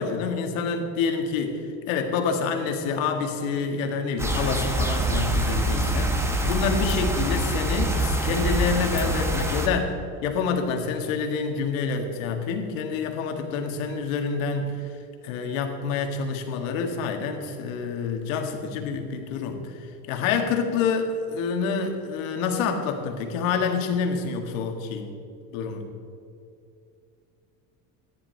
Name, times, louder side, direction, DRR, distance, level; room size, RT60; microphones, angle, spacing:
voice 1, 0.0-1.6 1.9-9.9 10.2-14.8 15.2-19.7 20.1-25.1 25.5-25.8, left 5 dB, 80° left, 4 dB, 1.9 m, -27 dB
sound 1, 4.2-9.7, right 1 dB, 5° right, 0.9 m, -25 dB
13.5 x 10.0 x 4.5 m, 2.5 s
cardioid pair, 150°, 40 cm